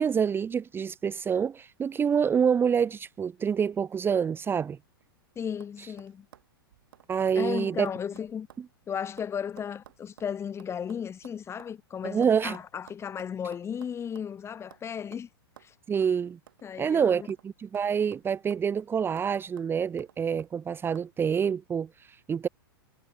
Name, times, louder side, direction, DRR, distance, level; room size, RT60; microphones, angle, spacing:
voice 1, 0.0-4.8 5.8-5.9 7.1-7.9 12.0-12.6 15.9-16.4 16.8-22.5, right 7 dB, 20° right, 1.5 m, -27 dB
sound 1, 4.8-5.2 5.6-5.7 6.0-8.7 8.9-11.7 12.2-14.4 14.7-14.9 15.1-15.3 15.6-15.7 16.0-16.1 16.5-17.5 17.7-18.8 19.2-19.3 19.6-20.5 20.9-21.1, right 11 dB, 65° right, 7.4 m, -55 dB
voice 2, 5.4-6.3 7.4-8.5 8.9-15.3 15.6-15.7 16.6-17.3, left 8 dB, 20° left, 7.6 m, -35 dB
figure-of-eight pair, 105°, 12 cm